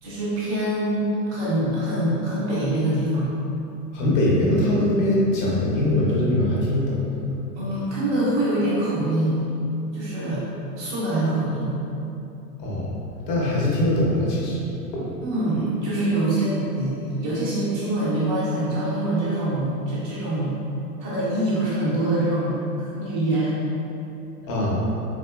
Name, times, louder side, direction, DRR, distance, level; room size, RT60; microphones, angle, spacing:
voice 1, 0.0-3.3 7.5-9.4 9.9-10.4 10.8-11.7 15.2-20.5 21.0-23.6, right 1 dB, 15° right, -9 dB, 0.4 m, -24 dB
voice 2, 3.9-7.0 12.6-13.0 13.3-14.6 14.9-15.1 24.5-24.8, left 1 dB, 30° left, -5 dB, 0.6 m, -22 dB
3.8 x 2.8 x 2.3 m, 2.9 s
hypercardioid pair, 135°, 48 cm